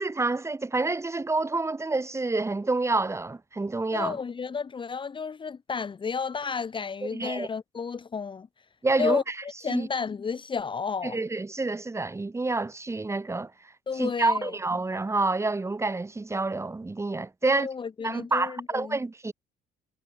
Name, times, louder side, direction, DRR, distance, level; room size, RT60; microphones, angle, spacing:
voice 1, 0.0-4.2 7.0-7.5 8.8-9.3 9.7-9.9 11.0-13.5 13.9-17.7 18.0-19.3, right 3 dB, 15° right, 4.6 m, -28 dB
voice 2, 3.9-8.5 9.0-9.2 9.6-11.2 13.9-14.5 17.4-19.0, left 5 dB, 30° left, 1.6 m, -32 dB
cardioid pair, 110°, 17 cm